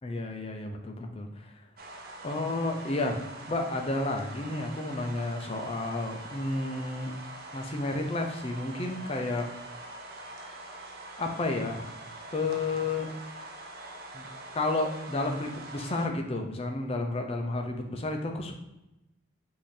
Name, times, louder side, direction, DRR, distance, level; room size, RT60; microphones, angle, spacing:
voice 1, 0.0-1.5 2.2-3.2 3.5-7.1 7.5-9.5 11.2-11.9 12.3-13.1 14.1-14.3 14.5-18.6, left 2 dB, 30° left, 3 dB, 0.5 m, -31 dB
sound 1, 1.8-16.1, right 2 dB, 45° right, 0.5 m, -44 dB
5.4 x 2.7 x 3.3 m, 0.94 s
head